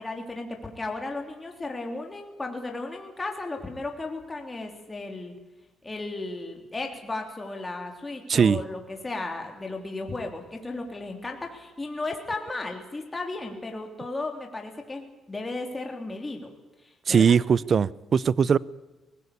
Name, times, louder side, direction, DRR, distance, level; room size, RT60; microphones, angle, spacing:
voice 1, 0.0-5.3 5.8-16.5 16.8-17.3, left 2 dB, 20° left, 2 dB, 3.5 m, -35 dB
voice 2, 17.1-18.6, right 6 dB, 50° right, 21 dB, 0.6 m, -20 dB
20.5 x 16.5 x 8.6 m, 1.1 s
cardioid pair, 90°, 0 cm